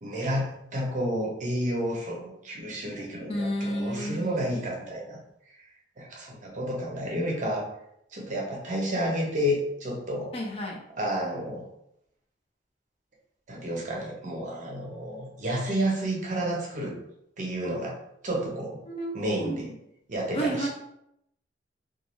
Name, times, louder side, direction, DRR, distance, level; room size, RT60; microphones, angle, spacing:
voice 1, 0.0-5.2 6.0-7.7 8.1-10.3 10.9-11.7 13.5-17.0 17.4-18.0 18.2-18.8 19.1-19.7 20.1-20.7, equal, 45° right, -2 dB, 0.7 m, -30 dB
voice 2, 3.3-4.5 10.3-10.8 18.9-19.1 19.4-19.7 20.3-20.7, right 1 dB, 35° left, -1 dB, 0.5 m, -31 dB
2.4 x 2.3 x 3.0 m, 0.78 s
head